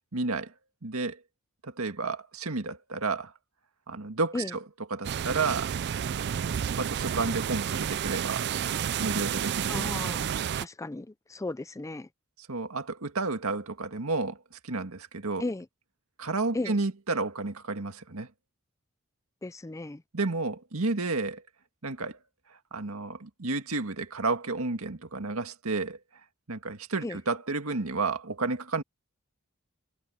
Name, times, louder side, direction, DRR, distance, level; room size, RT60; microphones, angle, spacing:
voice 1, 0.1-0.5 0.8-1.2 1.6-3.3 3.9-4.6 4.9-5.7 6.8-8.4 9.0-9.7 10.3-10.4 12.5-14.4 14.6-15.4 16.2-18.3 20.1-21.4 21.8-22.2 22.7-26.0 26.5-28.8, right 3 dB, 75° right, 1.9 m, -31 dB
sound 1, 5.0-10.7, right 8 dB, 50° right, 0.4 m, -30 dB
voice 2, 9.7-10.3 10.5-12.1 15.4-15.7 16.5-16.8 19.4-20.0 27.0-27.2, left 2 dB, 15° left, 0.4 m, -35 dB
head